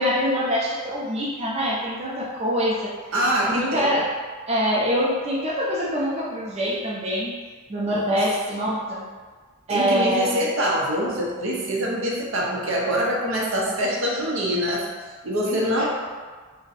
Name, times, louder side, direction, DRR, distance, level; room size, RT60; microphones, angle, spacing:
voice 1, 0.0-2.9 3.5-4.0 4.5-7.3 7.7-9.1 9.7-10.3 15.5-15.9, equal, 30° right, -5 dB, 0.5 m, -24 dB
voice 2, 3.1-3.9 7.9-8.1 9.7-14.9 15.2-15.9, equal, 80° right, -3 dB, 0.6 m, -24 dB
2.5 x 2.1 x 3.9 m, 1.5 s
head